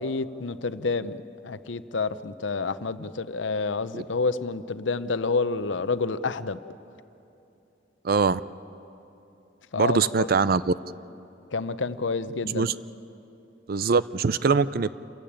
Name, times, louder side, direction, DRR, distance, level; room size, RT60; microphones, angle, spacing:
voice 1, 0.0-6.6 9.7-10.3 11.5-12.8, left 4 dB, 90° left, 13 dB, 0.7 m, -29 dB
voice 2, 8.0-8.4 9.8-10.7 12.5-12.7 13.7-14.9, right 4 dB, 55° right, 16 dB, 0.5 m, -22 dB
27.5 x 15.5 x 8.9 m, 2.9 s
head